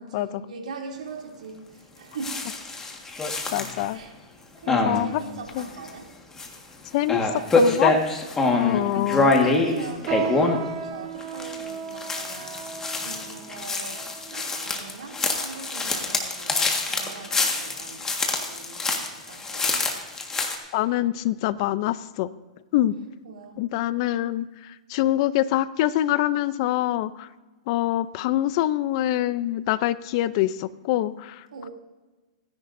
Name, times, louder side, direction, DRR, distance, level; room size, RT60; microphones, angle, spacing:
voice 1, 0.0-2.4 3.9-4.2 4.6-6.1 7.3-7.6 8.4-10.6 10.8-18.1 18.4-19.8 22.9-23.6 31.5-31.7, right 4 dB, 80° right, 0 dB, 2.8 m, -41 dB
sound 1, 2.2-3.9 4.7-5.0 5.5-5.9 6.4-6.5 7.0-10.6 11.2-20.5, left 3 dB, 15° left, 1.7 m, -25 dB
voice 2, 3.5-4.0 4.7-5.2 5.6-5.7 6.9-7.9 8.5-9.3 20.7-22.3 22.7-22.9 23.6-24.4 24.9-27.3 27.7-31.4, left 14 dB, 50° left, 16 dB, 0.6 m, -25 dB
sound 2, 10.1-15.7 16.4-16.5 17.3-17.6 18.0-18.1 18.8-18.9, right 6 dB, 40° right, 1.1 m, -36 dB
25.0 x 10.5 x 2.7 m, 1.2 s
hypercardioid pair, 135°, 4 cm